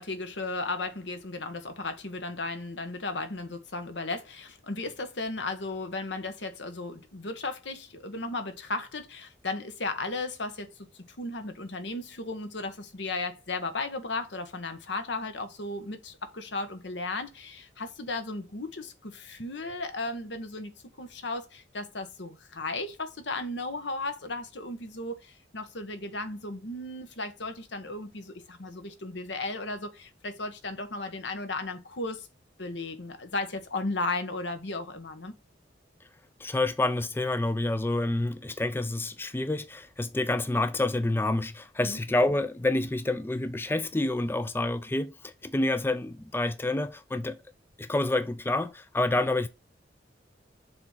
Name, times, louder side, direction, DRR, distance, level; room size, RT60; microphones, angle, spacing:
voice 1, 0.0-20.7 21.0-32.3 32.6-35.3 41.8-42.0, left 2 dB, 75° left, 1.3 m, -35 dB
voice 2, 36.4-47.4 47.8-49.5, left 2 dB, 10° left, 0.4 m, -28 dB
6.8 x 3.7 x 5.6 m
head